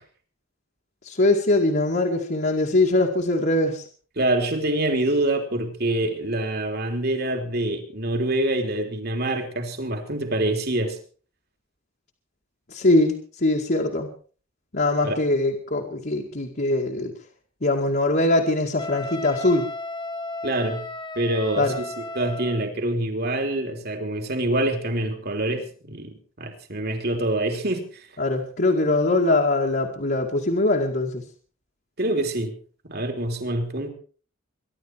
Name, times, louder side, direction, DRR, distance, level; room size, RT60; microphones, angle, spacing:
voice 1, 1.0-3.9 12.7-14.1 14.7-17.1 17.6-19.7 21.6-21.8 28.2-31.2, left 2 dB, 45° left, -1 dB, 2.2 m, -22 dB
voice 2, 4.2-11.0 15.0-15.2 20.4-20.8 21.2-26.1 26.4-28.1 32.0-32.6 32.9-33.9, right 1 dB, 50° right, 4 dB, 3.4 m, -26 dB
Wind instrument woodwind instrument, 18.8-22.7, left 2 dB, 20° left, 1.3 m, -34 dB
24.0 x 12.0 x 4.7 m, 0.42 s
head